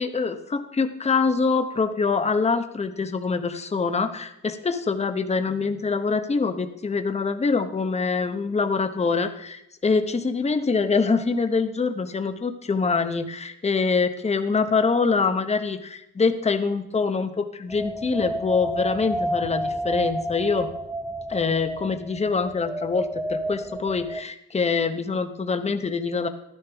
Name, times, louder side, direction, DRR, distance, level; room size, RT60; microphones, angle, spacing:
voice 1, 0.0-20.7 21.3-26.3, left 4 dB, 20° left, 8 dB, 0.9 m, -24 dB
sound 1, 17.7-24.2, right 1 dB, 5° right, 0.5 m, -30 dB
12.0 x 10.5 x 3.4 m, 0.82 s
cardioid pair, 90°, 30 cm